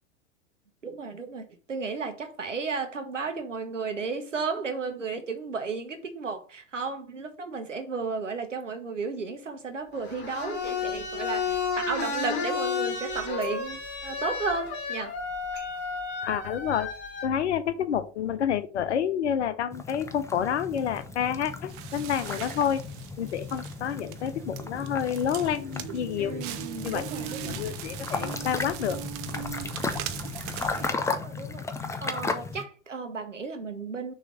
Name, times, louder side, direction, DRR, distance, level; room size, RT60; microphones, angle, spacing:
voice 1, 0.8-15.1 26.2-27.6 30.6-31.6 32.0-34.1, right 4 dB, 85° right, 1.2 m, -34 dB
sound 1, 9.9-17.2, left 5 dB, 30° left, 2.5 m, -32 dB
voice 2, 16.2-16.9 17.2-22.8 23.2-26.4 26.8-27.0 27.4-29.0, left 8 dB, 65° left, 0.8 m, -29 dB
sound 2, 19.7-32.6, left 4 dB, 10° left, 0.5 m, -35 dB
Crackle, 20.7-30.9, right 11 dB, 45° right, 0.8 m, -40 dB
6.4 x 3.2 x 5.1 m
figure-of-eight pair, 85°, 36 cm